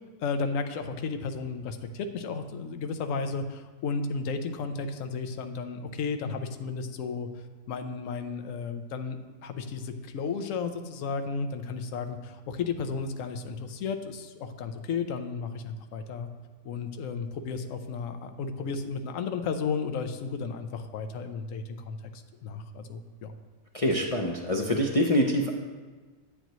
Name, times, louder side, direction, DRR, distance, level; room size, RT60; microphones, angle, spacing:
voice 1, 0.2-7.3 7.7-16.3 16.6-23.3, left 5 dB, 65° left, 7 dB, 1.0 m, -33 dB
voice 2, 23.7-25.5, equal, 45° left, 0 dB, 0.4 m, -25 dB
9.9 x 9.0 x 3.1 m, 1.3 s
omnidirectional pair, 1.6 m